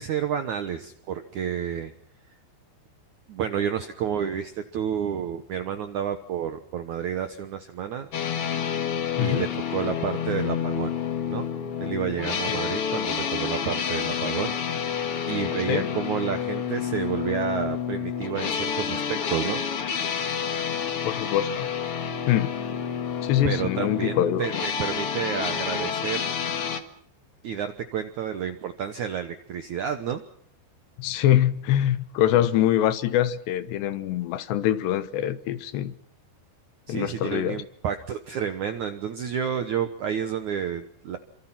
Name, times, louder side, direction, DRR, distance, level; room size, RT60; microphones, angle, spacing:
voice 1, 0.0-1.9 3.3-8.1 9.2-11.0 11.3-11.5 11.8-14.6 15.3-19.6 23.4-26.3 27.4-30.2 36.9-41.2, right 8 dB, 75° right, 1.8 m, -30 dB
sound 1, 8.1-26.8, left 7 dB, 55° left, 1.6 m, -29 dB
voice 2, 9.2-9.5 12.5-12.6 15.7-15.9 21.0-21.7 22.3-22.6 23.2-24.5 31.0-35.9 36.9-37.6, left 12 dB, 75° left, 3.3 m, -24 dB
28.0 x 25.5 x 5.9 m
omnidirectional pair, 5.1 m